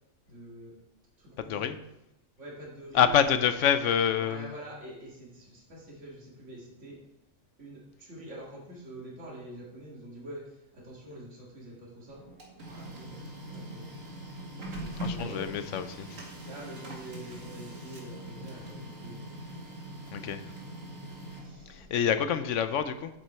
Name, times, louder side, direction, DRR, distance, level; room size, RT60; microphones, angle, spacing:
voice 1, 0.3-0.8 1.2-1.7 2.4-3.4 4.1-7.0 7.6-12.2 12.7-14.0 14.7-15.7 16.4-19.2 21.4-22.4, right 1 dB, 65° right, -4 dB, 2.4 m, -45 dB
voice 2, 1.4-1.8 2.9-4.5 15.0-16.2 20.1-20.4 21.7-23.1, left 8 dB, 75° left, 11 dB, 0.9 m, -27 dB
Printer, 12.1-21.9, right 1 dB, 90° right, 2.1 m, -42 dB
7.6 x 7.5 x 4.4 m, 0.88 s
omnidirectional pair, 1.3 m